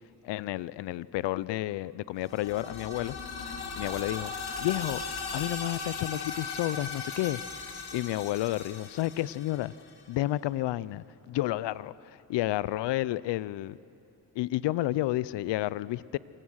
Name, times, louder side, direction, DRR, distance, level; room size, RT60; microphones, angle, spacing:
voice 1, 0.2-3.2 3.8-4.3 4.6-5.0 5.3-7.4 7.9-9.7 10.1-13.8 14.4-16.2, left 16 dB, 80° left, 20 dB, 0.6 m, -31 dB
sound 1, 2.2-10.0, left 4 dB, 65° left, 2.9 m, -38 dB
26.0 x 17.5 x 6.4 m, 3.0 s
cardioid pair, 75°, 42 cm